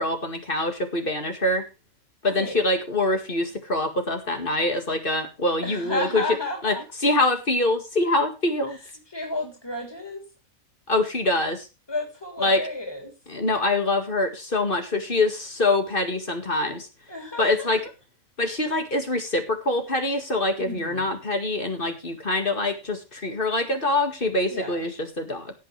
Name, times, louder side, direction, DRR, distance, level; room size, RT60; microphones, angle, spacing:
voice 1, 0.0-1.6 2.2-6.2 6.6-6.8 7.0-8.8 10.9-11.7 12.4-12.6 13.3-16.9 17.4-17.8 18.4-25.5, left 2 dB, 40° left, 6 dB, 2.2 m, -24 dB
voice 2, 2.3-2.6 5.6-6.8 8.7-8.8 9.1-10.2 11.9-13.2 17.1-17.8 20.6-21.1 24.5-24.8, left 2 dB, 15° left, 2 dB, 3.6 m, -32 dB
17.0 x 9.2 x 3.3 m, 0.28 s
omnidirectional pair, 1.4 m